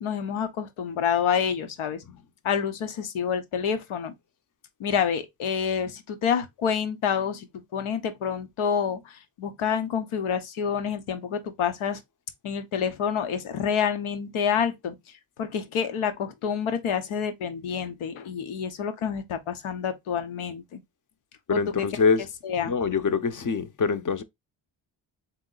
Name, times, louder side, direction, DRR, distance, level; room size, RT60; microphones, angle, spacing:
voice 1, 0.0-2.0 2.4-4.1 4.8-12.0 12.4-15.0 15.4-20.8 21.5-21.9 22.4-22.7, left 7 dB, 85° left, 0.9 m, -28 dB
voice 2, 21.5-22.3 22.6-24.2, left 5 dB, 40° left, 0.7 m, -24 dB
3.7 x 3.0 x 3.8 m
cardioid pair, 75°, 48 cm